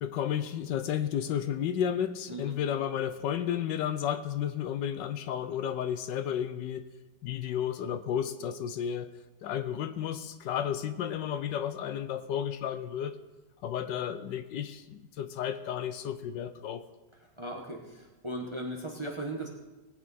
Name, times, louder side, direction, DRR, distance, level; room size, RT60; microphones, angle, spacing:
voice 1, 0.0-6.8 7.2-9.1 9.4-13.1 13.6-16.8, left 9 dB, 75° left, 12 dB, 1.2 m, -32 dB
voice 2, 17.4-19.5, right 1 dB, 20° right, 1 dB, 0.9 m, -37 dB
19.5 x 8.4 x 4.1 m, 1.1 s
omnidirectional pair, 2.0 m